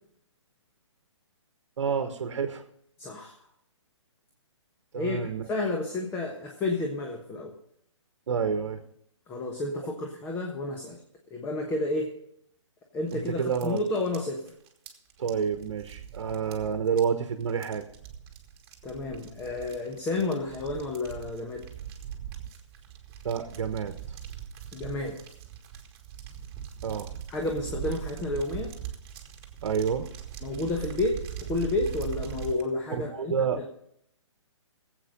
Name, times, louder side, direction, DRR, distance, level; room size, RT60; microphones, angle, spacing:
voice 1, 1.8-2.6 4.9-5.5 8.3-8.8 13.1-13.8 15.2-17.8 23.2-24.2 26.8-27.1 29.6-30.1 32.9-33.7, right 6 dB, 65° right, 7 dB, 1.2 m, -29 dB
voice 2, 3.0-3.4 5.0-5.2 5.5-7.5 9.3-11.0 11.3-12.1 12.9-14.4 18.8-21.6 24.7-25.2 27.3-28.7 30.4-33.3, left 2 dB, 15° left, 1 dB, 1.3 m, -31 dB
sound 1, 13.1-32.6, right 10 dB, 25° right, 1.8 m, -41 dB
17.0 x 8.3 x 5.1 m, 0.72 s
hypercardioid pair, 145°, 16 cm